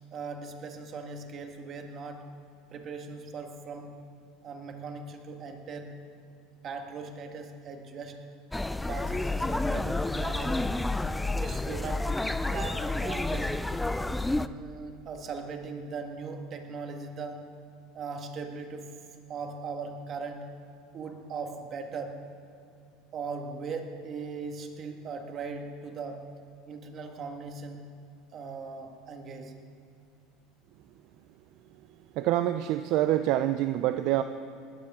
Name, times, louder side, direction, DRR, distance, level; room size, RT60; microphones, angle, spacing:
voice 1, 0.1-2.3 2.7-3.9 4.4-5.9 6.6-8.2 8.8-10.8 11.3-13.6 14.3-17.4 17.9-19.0 19.3-20.5 20.9-22.2 23.1-26.3 26.7-27.9 28.3-29.6, right 4 dB, 40° right, 4 dB, 1.8 m, -39 dB
sound 1, 8.5-14.5, left 2 dB, 5° left, 0.4 m, -30 dB
voice 2, 32.2-34.2, right 13 dB, 60° right, 10 dB, 0.5 m, -26 dB
20.0 x 14.0 x 3.7 m, 2.6 s
supercardioid pair, 115°, 0 cm